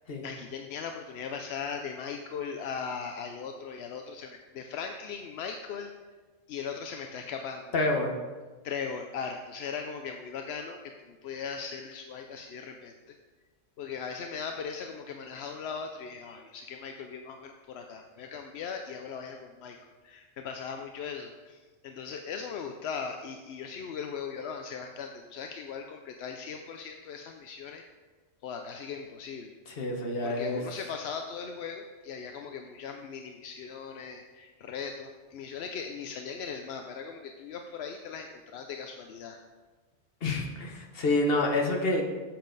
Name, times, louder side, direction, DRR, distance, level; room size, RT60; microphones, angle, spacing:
voice 1, 0.2-5.9 6.5-7.6 8.6-13.2 13.8-19.8 20.0-27.8 28.4-29.6 30.2-39.4, left 6 dB, 65° left, 4 dB, 0.7 m, -39 dB
voice 2, 7.7-8.1 29.7-30.6 40.2-42.1, left 2 dB, 50° left, 2 dB, 1.3 m, -28 dB
8.8 x 7.4 x 3.9 m, 1.3 s
omnidirectional pair, 1.4 m